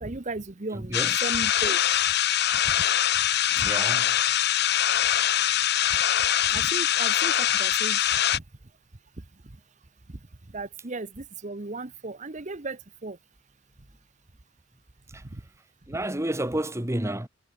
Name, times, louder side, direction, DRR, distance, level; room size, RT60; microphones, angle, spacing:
voice 1, 0.0-1.8 2.7-2.8 3.6-3.7 6.5-8.0 8.3-8.4 10.5-13.2 15.3-15.4, right 2 dB, 40° right, 1.0 m, -35 dB
voice 2, 0.7-1.1 3.5-4.1 15.1-15.2 15.9-17.3, right 1 dB, 15° right, 1.5 m, -30 dB
sound 1, 0.9-8.4, left 11 dB, 55° left, 1.1 m, -23 dB
head